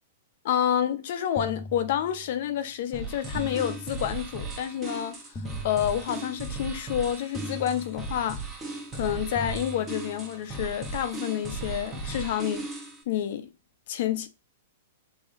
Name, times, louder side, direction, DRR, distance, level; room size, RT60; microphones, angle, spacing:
voice 1, 0.4-5.2 5.6-8.4 8.9-12.7 13.1-13.5 13.9-14.3, left 10 dB, 55° left, 0.7 m, -29 dB
sound 1, 1.4-2.5 3.3-4.5 5.3-6.5 7.3-8.5 9.3-10.5, left 2 dB, 15° left, 0.6 m, -41 dB
sound 2, 2.9-13.0, right 3 dB, 15° right, 1.1 m, -37 dB
6.4 x 2.9 x 2.5 m
hypercardioid pair, 145°, 0 cm